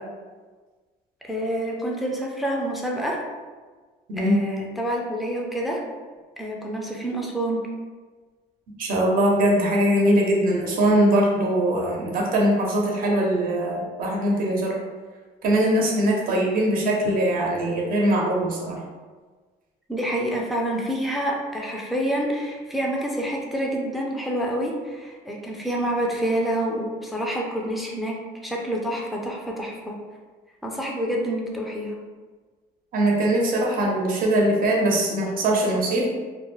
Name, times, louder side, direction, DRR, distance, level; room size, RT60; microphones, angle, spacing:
voice 1, 1.2-3.2 4.2-5.8 6.4-7.6 16.3-16.4 19.9-28.2 28.4-30.0 30.6-32.0, right 1 dB, ahead, -2 dB, 0.4 m, -27 dB
voice 2, 8.8-14.7 15.4-18.8 32.9-36.1, right 1 dB, 60° right, -2 dB, 0.7 m, -21 dB
2.3 x 2.0 x 3.1 m, 1.4 s
cardioid pair, 110°, 17 cm